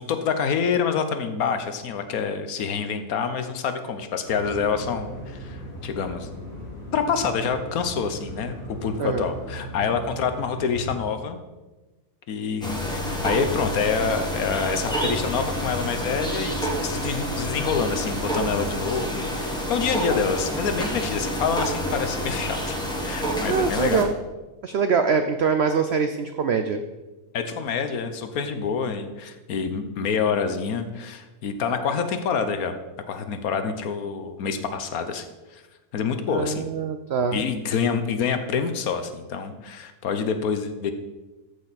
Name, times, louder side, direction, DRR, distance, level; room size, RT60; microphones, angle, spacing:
voice 1, 0.0-6.3 6.9-11.4 12.3-22.8 23.0-24.1 27.3-32.7 33.1-35.6 35.9-36.7 37.3-40.9, left 6 dB, 65° left, 8 dB, 1.2 m, -27 dB
sound 1, 4.2-11.0, equal, 90° left, 4.8 m, -38 dB
sound 2, 12.6-24.0, equal, 5° left, 1.3 m, -28 dB
voice 2, 23.5-24.1 24.6-26.8 36.3-37.4, right 5 dB, 75° right, 8 dB, 0.6 m, -23 dB
13.5 x 6.4 x 4.1 m, 1.2 s
omnidirectional pair, 1.7 m